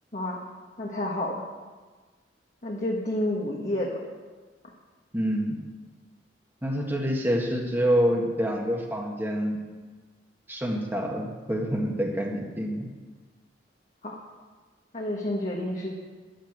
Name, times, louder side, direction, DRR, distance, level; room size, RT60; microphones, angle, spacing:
voice 1, 0.8-1.3 2.6-4.0 4.6-4.7 14.0-14.2 14.9-15.9, left 1 dB, 45° left, -2 dB, 1.6 m, -29 dB
voice 2, 5.1-5.5 6.6-9.6 10.5-12.9, equal, 10° right, 0 dB, 1.7 m, -27 dB
11.5 x 9.2 x 8.2 m, 1.4 s
head